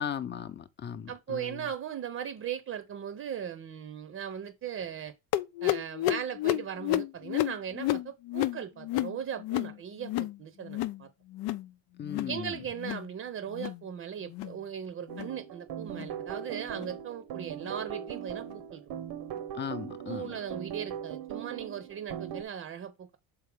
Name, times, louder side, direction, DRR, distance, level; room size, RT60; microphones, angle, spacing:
voice 1, 0.0-1.7 12.0-12.6 19.5-20.4, left 8 dB, 30° left, 0.7 m, -37 dB
voice 2, 1.1-5.1 5.6-11.1 12.3-18.8 20.1-23.2, right 8 dB, 40° right, 0.7 m, -38 dB
sound 1, 5.3-10.4 10.6-11.0 11.3-11.7 12.0-12.4 12.7-13.1 13.5-13.8 14.3-14.6 15.1-15.3 15.9-16.1 16.7-16.9 17.6-17.7 18.5-18.6, left 15 dB, 85° left, 0.6 m, -31 dB
sound 2, 15.1-22.4, right 9 dB, 80° right, 1.0 m, -40 dB
6.5 x 4.8 x 3.4 m
cardioid pair, 135°, 36 cm